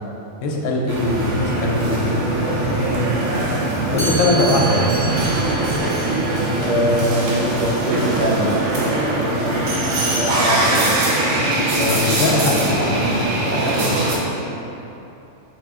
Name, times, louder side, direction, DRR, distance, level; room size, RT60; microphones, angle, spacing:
voice 1, 0.4-3.1 3.9-4.9 11.9-13.3, left 2 dB, 75° left, -1 dB, 0.9 m, -22 dB
sound 1, 0.9-14.2, right 2 dB, 70° right, 0.9 m, -21 dB
Chime, 4.0-9.8, right 3 dB, 25° left, 1.1 m, -32 dB
voice 2, 6.6-8.5 9.2-9.7 10.1-10.9 11.7-12.9 13.4-14.5, equal, 45° right, -12 dB, 0.6 m, -24 dB
4.6 x 2.4 x 3.5 m, 3.0 s
omnidirectional pair, 1.4 m